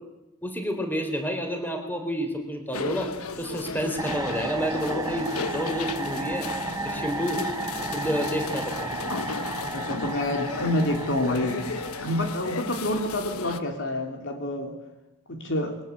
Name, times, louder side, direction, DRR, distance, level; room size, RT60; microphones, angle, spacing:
voice 1, 0.4-6.5 6.8-7.4 7.9-8.9, equal, 10° left, 5 dB, 3.9 m, -29 dB
sound 1, 2.7-13.6, left 4 dB, 75° left, 1.3 m, -35 dB
sound 2, 4.0-12.8, right 3 dB, 15° right, 0.9 m, -34 dB
voice 2, 9.7-11.7 12.0-14.8 15.3-15.8, left 1 dB, 55° left, 5 dB, 3.2 m, -28 dB
28.0 x 22.0 x 8.3 m, 0.99 s
head